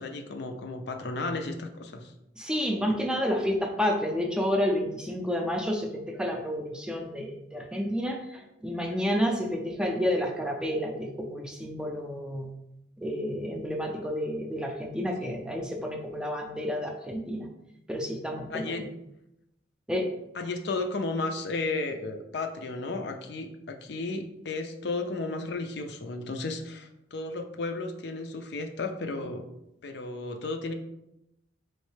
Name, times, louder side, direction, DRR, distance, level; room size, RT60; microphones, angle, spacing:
voice 1, 0.0-2.1 15.2-15.4 18.5-18.8 20.3-29.4 29.8-30.7, left 3 dB, 60° left, 5 dB, 0.5 m, -33 dB
voice 2, 2.4-12.5 13.0-17.5 17.9-18.8 19.9-20.1, equal, 5° right, 2 dB, 0.4 m, -30 dB
4.4 x 3.1 x 3.2 m, 0.86 s
head